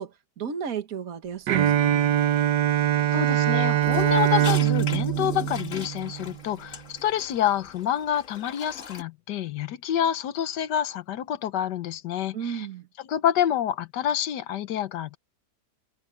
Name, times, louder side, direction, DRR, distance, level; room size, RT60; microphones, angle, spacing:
voice 1, 0.0-2.1 12.3-12.9, right 7 dB, 60° right, 1.9 m, -34 dB
Bowed string instrument, 1.5-6.3, right 12 dB, 90° right, 1.5 m, -23 dB
voice 2, 3.1-12.7 13.0-15.2, left 10 dB, 90° left, 1.5 m, -27 dB
sound 1, 3.8-9.0, left 6 dB, 50° left, 1.7 m, -39 dB
omnidirectional pair, 1.8 m